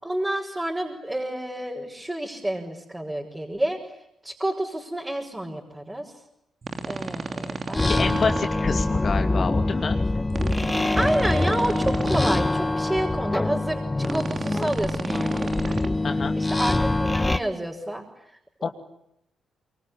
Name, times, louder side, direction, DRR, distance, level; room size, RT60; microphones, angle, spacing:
voice 1, 0.0-3.8 4.2-6.1 6.8-8.5 11.0-15.8 16.4-18.0 18.6-18.7, right 1 dB, 15° right, -2 dB, 5.8 m, -29 dB
sound 1, 6.6-8.5 10.3-12.2 14.0-15.9, right 4 dB, 45° right, 2.8 m, -33 dB
sound 2, 7.7-17.4, left 2 dB, 20° left, 1.1 m, -24 dB
voice 2, 7.8-10.0 16.0-16.3 18.6-18.7, left 5 dB, 55° left, 6 dB, 2.7 m, -27 dB
25.0 x 23.5 x 10.0 m, 0.79 s
supercardioid pair, 55°, 0 cm